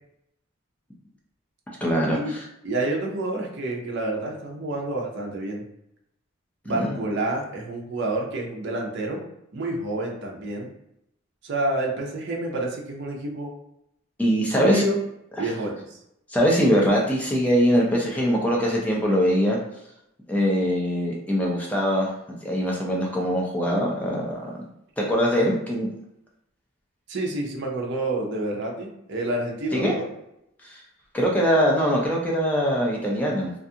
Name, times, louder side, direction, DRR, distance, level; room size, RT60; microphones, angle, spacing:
voice 1, 1.8-2.4 6.7-7.0 14.2-14.8 15.4-15.5 16.3-19.6 20.3-22.1 22.4-24.5 25.0-25.9 29.7-29.9 30.7-30.8 31.1-33.5, equal, 5° left, -2 dB, 0.5 m, -22 dB
voice 2, 2.6-5.6 6.6-9.2 9.5-10.7 11.4-13.5 14.5-15.0 15.4-16.0 27.1-30.1, right 2 dB, 55° right, 0 dB, 0.5 m, -28 dB
2.4 x 2.3 x 2.7 m, 0.81 s
head